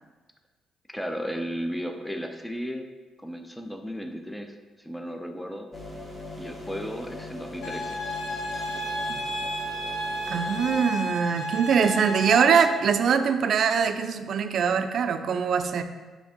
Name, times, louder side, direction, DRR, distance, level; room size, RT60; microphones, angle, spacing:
voice 1, 0.9-2.9 3.2-5.7 6.3-8.0, equal, 5° left, 5 dB, 0.6 m, -34 dB
sound 1, 5.7-10.8, left 2 dB, 25° left, 1.5 m, -41 dB
sound 2, 7.6-12.7, right 1 dB, 80° left, 1.1 m, -32 dB
voice 2, 10.3-15.8, right 6 dB, 60° right, 8 dB, 0.4 m, -23 dB
6.3 x 3.4 x 5.0 m, 1.3 s
cardioid pair, 90°, 0 cm